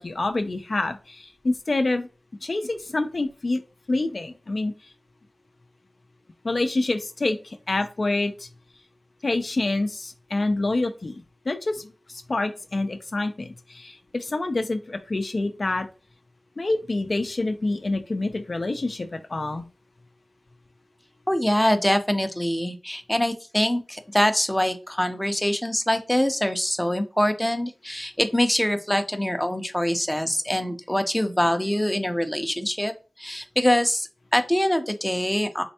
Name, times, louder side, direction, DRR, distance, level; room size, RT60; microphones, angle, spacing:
voice 1, 0.0-2.1 2.4-3.6 3.9-4.7 6.4-8.5 9.2-15.9 16.6-19.7, left 2 dB, 55° left, 7 dB, 0.4 m, -27 dB
voice 2, 21.3-32.9 33.2-35.6, left 1 dB, 10° left, 7 dB, 0.5 m, -24 dB
4.2 x 3.2 x 2.8 m, 0.34 s
wide cardioid pair, 70°, 0 cm